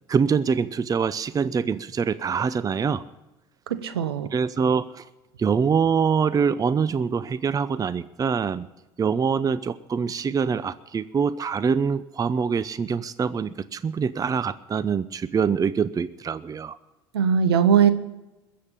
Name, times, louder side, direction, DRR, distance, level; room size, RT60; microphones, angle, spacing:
voice 1, 0.1-3.0 4.3-5.1 5.4-8.7 9.0-16.8, right 6 dB, 30° right, 16 dB, 0.6 m, -24 dB
voice 2, 3.7-4.3 17.1-17.9, right 7 dB, 90° right, 12 dB, 1.0 m, -20 dB
21.0 x 7.6 x 8.6 m, 1.0 s
hypercardioid pair, 70°, 13 cm